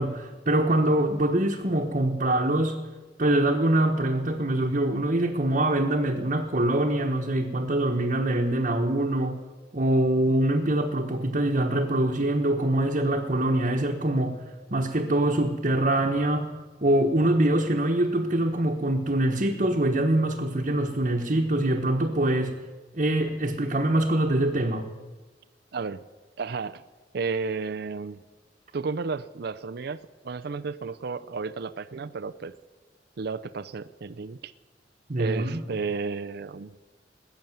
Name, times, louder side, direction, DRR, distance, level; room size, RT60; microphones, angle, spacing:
voice 1, 0.0-2.8 3.2-9.3 9.7-16.6 16.8-22.5 22.9-24.9 35.1-35.6, right 1 dB, 45° right, -1 dB, 1.2 m, -24 dB
voice 2, 25.7-26.0 26.4-26.8 27.1-28.2 28.7-32.5 33.2-34.5 35.2-36.8, right 4 dB, 60° right, 13 dB, 0.5 m, -32 dB
20.0 x 7.0 x 9.2 m, 1.3 s
head